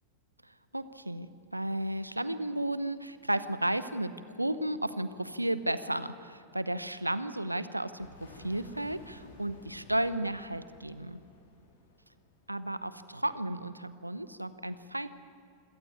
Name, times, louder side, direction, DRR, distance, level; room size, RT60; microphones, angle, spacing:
voice 1, 0.7-4.1 4.4-11.2 12.5-15.1, right 1 dB, 85° right, 14 dB, 0.9 m, -33 dB
sound 1, 8.0-12.7, left 3 dB, 60° left, 3.9 m, -54 dB
26.5 x 17.0 x 8.5 m, 2.7 s
figure-of-eight pair, 90°, 0 cm